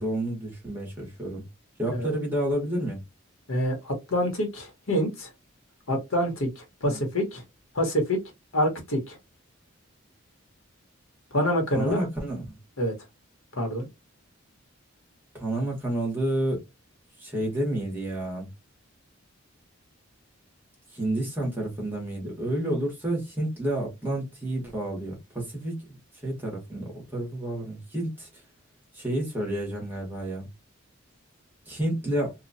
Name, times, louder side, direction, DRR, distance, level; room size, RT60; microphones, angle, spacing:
voice 1, 0.0-1.4 1.8-3.0 6.9-7.0 11.7-12.4 15.3-16.6 17.2-18.5 20.9-28.3 28.9-30.5 31.7-32.3, right 1 dB, 10° right, 1.2 m, -30 dB
voice 2, 3.5-5.3 5.9-7.4 7.7-8.2 8.5-9.2 11.3-12.0 12.8-12.9 13.6-13.9, equal, 75° left, 1.2 m, -26 dB
2.9 x 2.4 x 2.7 m
head